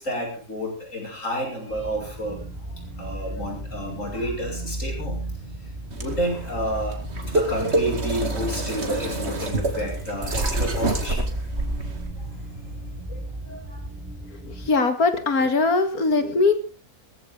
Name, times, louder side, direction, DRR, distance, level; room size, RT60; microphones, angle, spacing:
voice 1, 0.0-5.2 6.0-13.8, equal, 55° left, 0 dB, 6.7 m, -31 dB
sound 1, 1.7-14.7, right 1 dB, 15° right, 5.6 m, -35 dB
sound 2, 5.9-12.1, right 2 dB, 45° right, 2.5 m, -27 dB
voice 2, 14.4-16.5, left 3 dB, 75° left, 9 dB, 2.5 m, -21 dB
20.0 x 14.5 x 3.9 m, 0.34 s
omnidirectional pair, 1.6 m